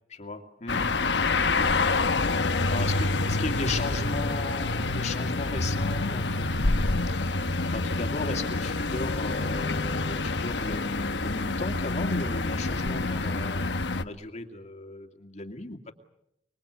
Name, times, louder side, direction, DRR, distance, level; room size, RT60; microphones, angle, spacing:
voice 1, 0.1-1.0 2.0-7.4 7.7-15.9, left 2 dB, 40° left, 4 dB, 2.4 m, -36 dB
sound 1, 0.7-14.0, left 3 dB, 80° left, 1.2 m, -27 dB
25.0 x 24.5 x 8.2 m, 0.80 s
head